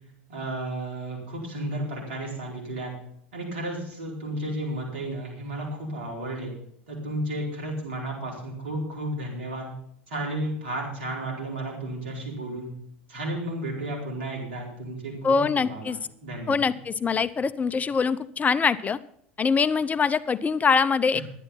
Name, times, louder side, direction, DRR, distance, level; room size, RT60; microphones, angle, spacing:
voice 1, 0.3-2.9 3.3-6.5 6.9-9.7 10.1-12.7 13.1-16.7 21.1-21.2, right 1 dB, 70° right, -1 dB, 4.5 m, -33 dB
voice 2, 15.2-16.0 16.5-19.0 19.4-21.2, left 5 dB, 25° left, 14 dB, 0.5 m, -23 dB
11.5 x 9.9 x 5.7 m, 0.69 s
hypercardioid pair, 80°, 6 cm